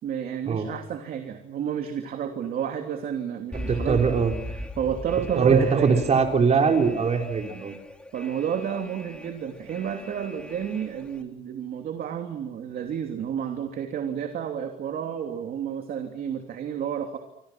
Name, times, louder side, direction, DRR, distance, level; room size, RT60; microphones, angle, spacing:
voice 1, 0.0-4.0 4.5-6.0 8.1-17.2, right 8 dB, 60° right, 5 dB, 3.0 m, -30 dB
Alarm, 3.5-11.2, equal, 5° left, 2.9 m, -39 dB
voice 2, 3.7-4.3 5.4-7.8, right 5 dB, 40° right, 3 dB, 4.5 m, -21 dB
29.0 x 26.0 x 6.1 m, 0.81 s
cardioid pair, 110°, 17 cm